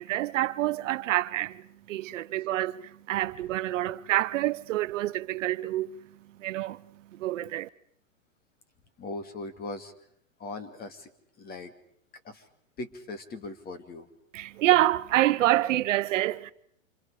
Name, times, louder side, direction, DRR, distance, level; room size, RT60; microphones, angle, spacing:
voice 1, 0.0-6.0 6.4-6.8 7.1-7.7 14.3-16.5, right 15 dB, 65° right, 1.1 m, -27 dB
voice 2, 9.0-9.9 10.4-11.1 11.4-11.7 12.2-12.4 12.8-14.1, left 2 dB, 25° left, 2.4 m, -39 dB
29.5 x 27.5 x 5.0 m
hypercardioid pair, 140°, 40 cm